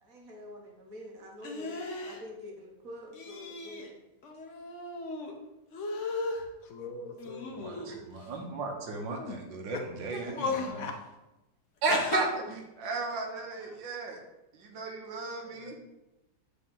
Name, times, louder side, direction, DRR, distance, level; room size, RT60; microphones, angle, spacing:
voice 1, 0.0-4.0, left 1 dB, 55° right, 0 dB, 1.4 m, -46 dB
sound 1, 1.4-2.2 3.1-3.9 4.2-5.3 5.7-6.4 7.2-8.2 9.0-9.3 10.1-10.7 11.9-12.2, left 3 dB, 50° left, 1.0 m, -36 dB
voice 2, 6.6-7.6 9.7-9.8 10.5-10.9 13.6-13.8 15.4-15.8, left 5 dB, 75° left, 4 dB, 0.8 m, -42 dB
voice 3, 7.5-10.9 11.8-14.2 14.5-15.8, right 3 dB, 85° right, 2 dB, 1.7 m, -35 dB
8.3 x 3.8 x 3.7 m, 0.96 s
omnidirectional pair, 2.0 m